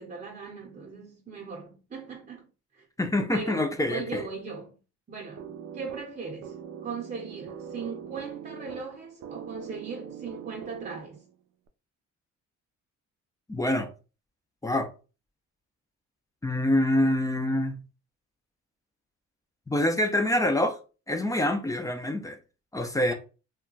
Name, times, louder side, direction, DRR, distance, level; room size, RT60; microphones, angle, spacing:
voice 1, 0.0-2.5 2.7-2.8 3.3-4.7 5.1-6.5 6.8-11.2, right 4 dB, 25° right, 0.7 m, -39 dB
voice 2, 3.0-4.2 13.5-13.9 14.6-14.9 16.4-17.8 19.7-20.8 21.1-22.4 22.7-23.1, left 1 dB, 10° left, 0.4 m, -26 dB
sound 1, 5.4-11.3, right 8 dB, 60° right, 0.4 m, -42 dB
2.2 x 2.1 x 3.8 m
cardioid pair, 90°, 30 cm